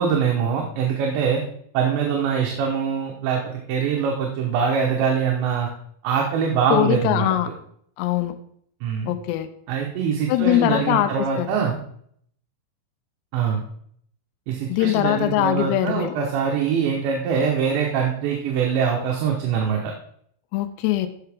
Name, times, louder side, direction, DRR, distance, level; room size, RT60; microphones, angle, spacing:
voice 1, 0.0-1.4 1.7-5.7 6.0-7.3 8.8-9.1 9.7-11.8 13.3-13.6 14.5-19.9, right 6 dB, 75° right, 0 dB, 3.1 m, -23 dB
voice 2, 6.7-7.5 8.0-8.4 9.1-9.5 10.3-11.5 14.7-16.2 20.5-21.1, left 13 dB, 85° left, 10 dB, 2.4 m, -22 dB
14.5 x 5.8 x 3.5 m, 0.66 s
omnidirectional pair, 5.5 m